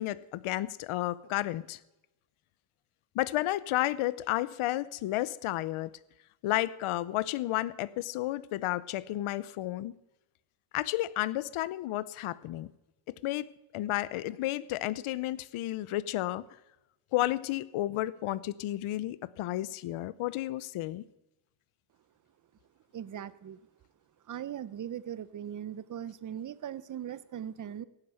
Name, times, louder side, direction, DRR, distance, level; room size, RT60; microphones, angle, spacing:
voice 1, 0.0-1.8 3.1-6.0 6.4-9.9 10.7-12.7 13.2-16.4 17.1-21.0, left 15 dB, 80° left, 18 dB, 0.7 m, -32 dB
voice 2, 22.9-23.6 24.3-27.9, right 9 dB, 40° right, 16 dB, 0.7 m, -39 dB
16.5 x 9.9 x 7.7 m, 0.95 s
cardioid pair, 140°, 49 cm